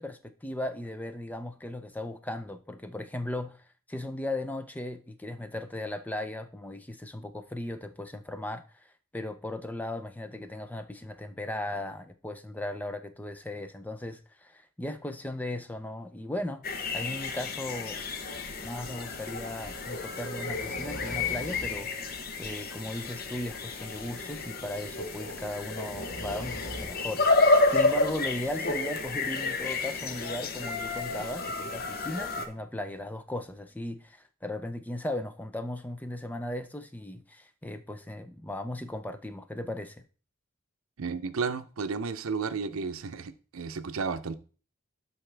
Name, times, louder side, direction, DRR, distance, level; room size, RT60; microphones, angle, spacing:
voice 1, 0.0-16.6 16.9-18.1 18.6-40.0, left 1 dB, 10° left, 0.4 m, -37 dB
sound 1, 16.6-32.5, left 3 dB, 45° left, 0.8 m, -30 dB
sound 2, 17.8-27.9, left 1 dB, 65° left, 1.9 m, -45 dB
voice 2, 41.0-44.4, right 5 dB, 80° right, 0.6 m, -33 dB
12.0 x 4.1 x 3.3 m
head